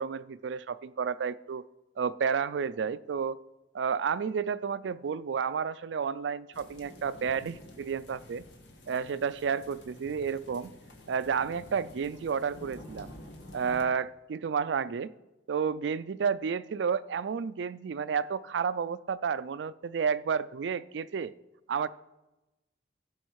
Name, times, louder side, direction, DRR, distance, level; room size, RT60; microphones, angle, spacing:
voice 1, 0.0-1.6 2.0-3.4 3.7-8.4 8.9-10.7 11.1-13.1 13.5-15.1 15.5-21.3 21.7-21.9, right 6 dB, 85° right, 16 dB, 0.4 m, -31 dB
sound 1, 6.5-13.8, left 1 dB, 80° left, 1.4 m, -50 dB
15.0 x 5.6 x 4.7 m, 1.0 s
head